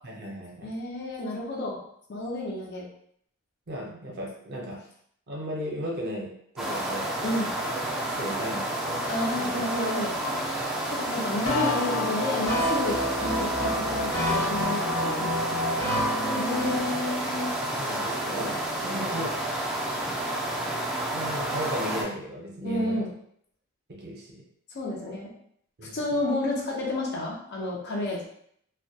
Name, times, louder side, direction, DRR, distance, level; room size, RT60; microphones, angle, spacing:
voice 1, 0.0-0.7 3.7-4.8 5.3-7.2 7.6-7.8 8.1-9.1 9.4-9.6 17.8-19.4 21.1-23.0 23.9-24.4 25.8-26.0, equal, 50° right, -1 dB, 0.6 m, -36 dB
voice 2, 0.6-1.8 2.1-2.9 7.2-7.5 9.1-15.3 16.3-17.5 22.6-23.1 24.7-25.3 25.9-28.3, left 1 dB, 50° left, -2 dB, 0.5 m, -31 dB
sound 1, 6.6-22.0, right 1 dB, ahead, 0.4 m, -30 dB
sound 2, 11.5-16.8, left 1 dB, 65° left, 0.9 m, -28 dB
2.2 x 2.2 x 2.6 m, 0.68 s
head